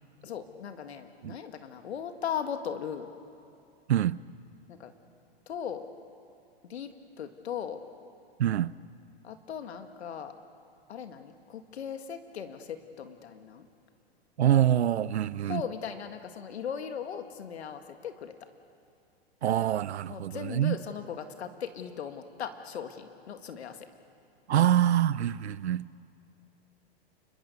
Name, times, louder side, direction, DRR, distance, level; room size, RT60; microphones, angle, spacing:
voice 1, 0.2-3.1 4.7-4.9 5.5-5.8 6.6-7.8 9.2-10.3 10.9-13.7 15.5-18.3 20.0-23.9, left 8 dB, 80° left, 2.0 m, -38 dB
voice 2, 8.4-8.7 14.4-15.6 19.4-20.7 24.5-25.8, right 11 dB, 85° right, 0.7 m, -25 dB
29.0 x 22.0 x 6.8 m
hypercardioid pair, 115°, 32 cm